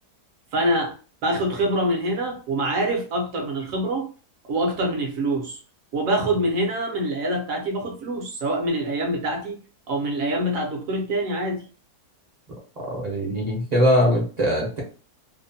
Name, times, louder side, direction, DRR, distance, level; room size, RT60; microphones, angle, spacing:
voice 1, 0.5-4.1 4.4-5.6 5.9-9.6 9.9-11.7, right 1 dB, 65° right, 0.9 m, -25 dB
voice 2, 12.8-14.8, equal, 40° right, 0.6 m, -21 dB
2.8 x 2.1 x 2.6 m
omnidirectional pair, 1.7 m